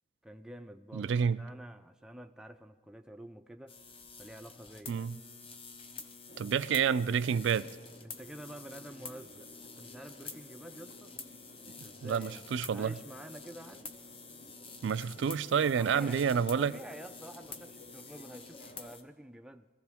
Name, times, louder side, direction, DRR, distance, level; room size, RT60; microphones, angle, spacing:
voice 1, 0.2-3.8 4.2-5.1 8.0-9.5 9.8-11.2 11.7-12.4 12.7-13.9 15.6-19.7, right 1 dB, 5° right, 0.3 m, -49 dB
voice 2, 0.9-1.4 4.9-5.2 6.4-7.7 12.0-12.9 14.8-16.8, right 7 dB, 75° right, 0.4 m, -29 dB
sound 1, 3.7-19.0, left 4 dB, 30° left, 0.7 m, -49 dB
sound 2, 6.3-19.0, equal, 50° left, 1.1 m, -56 dB
21.0 x 15.0 x 3.5 m
head